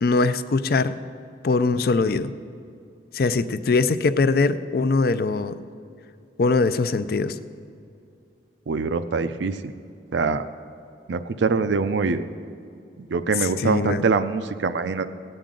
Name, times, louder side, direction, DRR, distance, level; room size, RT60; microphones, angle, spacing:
voice 1, 0.0-1.0 1.4-2.3 3.1-5.6 6.4-7.4 13.6-14.1, left 3 dB, 55° left, 13 dB, 0.4 m, -21 dB
voice 2, 8.7-9.7 10.1-10.4 11.1-12.3 13.0-15.1, right 4 dB, 80° right, 11 dB, 0.5 m, -24 dB
18.5 x 8.8 x 3.8 m, 2.4 s
head